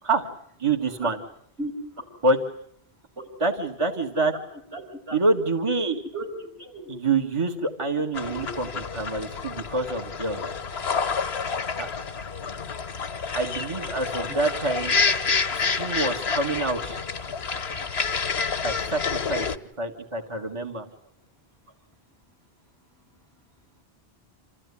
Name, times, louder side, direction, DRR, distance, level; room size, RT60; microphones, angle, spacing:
voice 1, 0.6-1.2 2.2-2.4 3.4-4.3 5.1-6.0 6.9-10.4 11.8-11.9 13.4-14.9 15.5-17.0 18.6-19.5 19.8-20.9, right 3 dB, 30° right, 3 dB, 1.8 m, -26 dB
voice 2, 4.7-5.2 6.1-6.3 6.6-6.8 8.3-8.4 14.3-14.4 16.9-17.0, right 2 dB, 85° right, -1 dB, 6.8 m, -35 dB
sound 1, 8.1-19.6, left 5 dB, 85° left, 1.5 m, -28 dB
27.5 x 15.5 x 9.8 m, 0.69 s
omnidirectional pair, 1.0 m